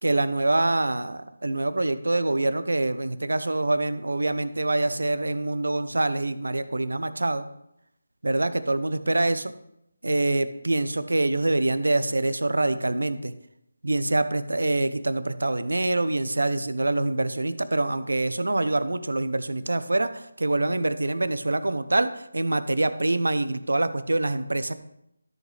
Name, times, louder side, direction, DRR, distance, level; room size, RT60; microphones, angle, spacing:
voice 1, 0.0-7.5 8.2-9.5 10.0-13.3 13.8-24.7, right 2 dB, 85° right, 12 dB, 0.7 m, -25 dB
13.0 x 6.5 x 3.3 m, 0.80 s
figure-of-eight pair, 165°, 0 cm